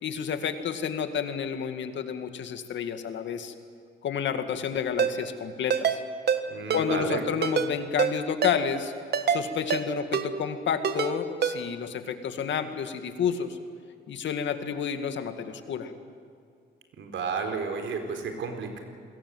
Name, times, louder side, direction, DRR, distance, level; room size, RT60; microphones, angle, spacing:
voice 1, 0.0-3.5 4.0-6.0 6.7-8.9 9.3-13.6 14.1-15.9, left 7 dB, 70° left, 8 dB, 2.3 m, -30 dB
Ringtone, 5.0-5.1 5.7-6.0 6.3-6.4 6.7-6.8 7.4-7.7 8.0-8.1 8.4-8.6 9.1-9.4 9.7-9.8 10.1-10.3 10.8-11.1 11.4-11.5, right 7 dB, 55° right, 1.7 m, -25 dB
voice 2, 6.5-7.3 17.0-18.8, right 5 dB, 70° right, 4 dB, 4.4 m, -32 dB
28.0 x 21.0 x 8.0 m, 2.3 s
cardioid pair, 90°, 20 cm